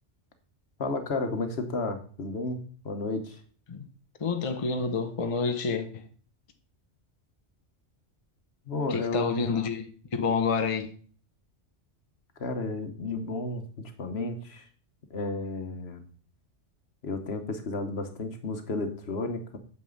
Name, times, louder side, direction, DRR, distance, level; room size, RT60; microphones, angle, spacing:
voice 1, 0.8-3.4 8.7-9.4 12.4-13.6 14.0-14.6 15.1-16.0 17.0-19.6, left 3 dB, 60° left, 1.4 m, -32 dB
voice 2, 4.2-6.0 8.9-10.9, left 5 dB, 30° left, 0.8 m, -28 dB
9.1 x 6.8 x 3.9 m
omnidirectional pair, 1.2 m